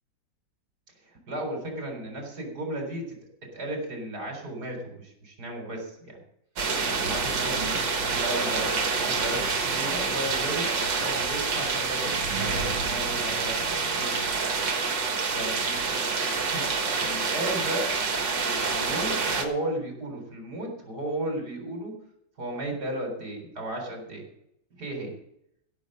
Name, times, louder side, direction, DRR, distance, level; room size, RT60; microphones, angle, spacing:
voice 1, 1.0-3.2 3.5-6.2 6.8-14.3 15.3-17.9 18.3-21.9 22.4-24.3 24.7-25.1, right 1 dB, 50° right, 2 dB, 4.4 m, -35 dB
sound 1, 6.6-19.4, right 4 dB, 65° right, 2.2 m, -27 dB
15.5 x 6.9 x 6.6 m, 0.76 s
omnidirectional pair, 2.1 m